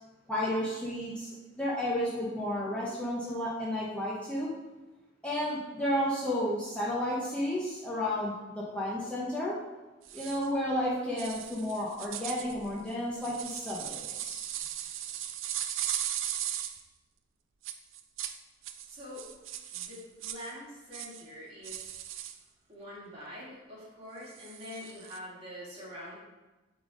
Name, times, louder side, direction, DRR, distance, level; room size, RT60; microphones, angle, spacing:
voice 1, 0.3-4.5 5.2-9.6 10.1-14.5, left 1 dB, 5° left, -7 dB, 0.9 m, -32 dB
sound 1, 10.0-10.5 11.2-16.8 17.6-18.4 18.6-20.5 20.9-21.2 21.6-22.4 24.3-25.2, right 11 dB, 80° right, 0.5 m, -38 dB
voice 2, 18.9-19.3 19.7-21.9 22.7-26.2, left 1 dB, 30° right, -7 dB, 2.2 m, -45 dB
8.6 x 3.6 x 3.8 m, 1.1 s
head